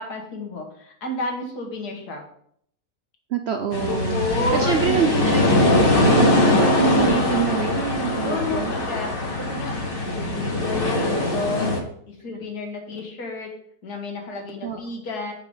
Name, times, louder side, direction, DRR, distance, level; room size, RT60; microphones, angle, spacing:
voice 1, 0.0-2.2 3.9-5.0 6.7-7.5 8.2-13.5 13.8-15.3, left 2 dB, 75° left, 2 dB, 2.0 m, -30 dB
voice 2, 3.3-4.2 4.5-8.8 14.6-14.8, right 7 dB, 70° right, 6 dB, 0.6 m, -25 dB
sound 1, 3.7-11.8, left 1 dB, 35° left, 1.3 m, -21 dB
5.7 x 4.9 x 5.3 m, 0.67 s
omnidirectional pair, 1.7 m